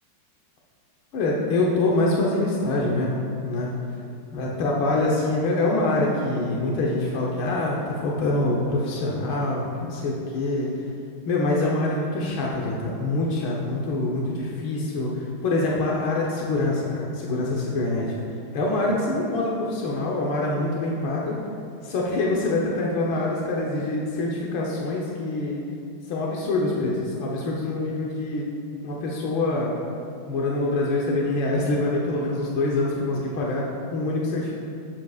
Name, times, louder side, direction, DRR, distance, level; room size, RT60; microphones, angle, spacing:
voice 1, 1.1-3.7 4.3-10.9 11.3-21.4 21.8-25.6 26.1-28.5 28.8-29.7 30.3-34.5, left 2 dB, 90° left, -3 dB, 1.8 m, -25 dB
17.0 x 7.7 x 2.4 m, 2.5 s
omnidirectional pair, 2.1 m